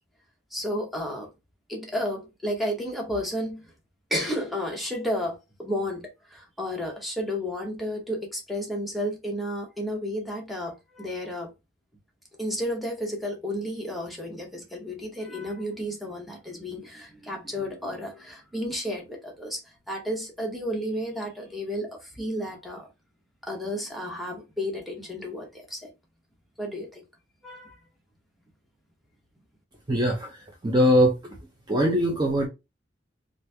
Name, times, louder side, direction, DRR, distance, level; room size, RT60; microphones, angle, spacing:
voice 1, 0.5-1.3 1.7-3.6 4.1-11.5 12.4-19.6 19.9-22.9 23.4-25.9 26.6-27.0 27.4-27.8, equal, ahead, 0.9 m, -32 dB
voice 2, 29.9-30.3 30.6-31.1 31.7-32.5, equal, 25° right, 0.6 m, -21 dB
3.0 x 2.6 x 3.3 m
head